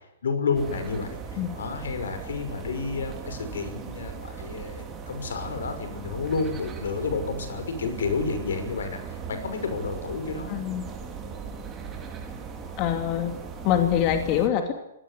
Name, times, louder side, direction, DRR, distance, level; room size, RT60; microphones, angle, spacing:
voice 1, 0.2-10.6, left 4 dB, 85° left, 8 dB, 5.9 m, -30 dB
sound 1, 0.5-14.5, right 6 dB, 20° right, 4.4 m, -38 dB
voice 2, 10.5-10.8 12.8-13.3 13.6-14.6, left 10 dB, 35° left, 6 dB, 2.7 m, -24 dB
24.5 x 17.5 x 8.5 m, 0.87 s
hypercardioid pair, 145°, 0 cm